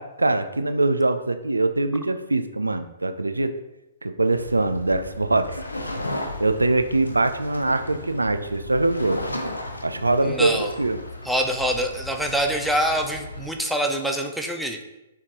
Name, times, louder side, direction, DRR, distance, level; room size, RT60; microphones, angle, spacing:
voice 1, 0.0-3.5 4.0-5.6 6.4-9.2 9.8-11.0, right 2 dB, 85° right, 9 dB, 0.3 m, -23 dB
sound 1, 4.3-13.5, left 2 dB, 90° left, 0.5 m, -35 dB
voice 2, 10.2-10.7 11.2-14.8, right 1 dB, ahead, 2 dB, 0.5 m, -25 dB
4.3 x 3.6 x 2.9 m, 0.94 s
figure-of-eight pair, 120°, 0 cm